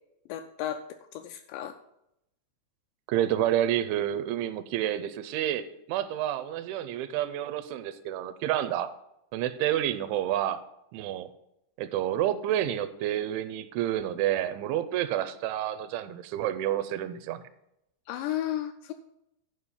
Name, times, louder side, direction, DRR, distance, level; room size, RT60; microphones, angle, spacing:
voice 1, 0.3-0.8 1.1-1.8 18.1-18.9, left 11 dB, 85° left, 7 dB, 2.5 m, -33 dB
voice 2, 3.1-8.9 9.3-10.6 10.9-11.3 11.8-17.4, right 11 dB, 85° right, 12 dB, 2.9 m, -29 dB
11.5 x 5.0 x 5.6 m, 0.82 s
omnidirectional pair, 5.4 m